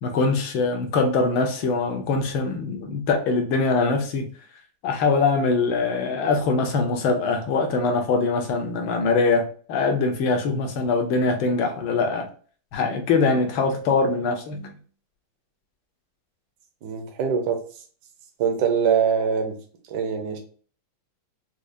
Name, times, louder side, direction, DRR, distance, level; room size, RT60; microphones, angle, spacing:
voice 1, 0.0-4.3 4.8-12.3 12.7-14.8, left 4 dB, 70° left, 1.5 m, -23 dB
voice 2, 16.8-17.6 18.4-19.5 19.9-20.4, right 7 dB, 65° right, 1.2 m, -23 dB
4.9 x 2.4 x 2.5 m
omnidirectional pair, 2.3 m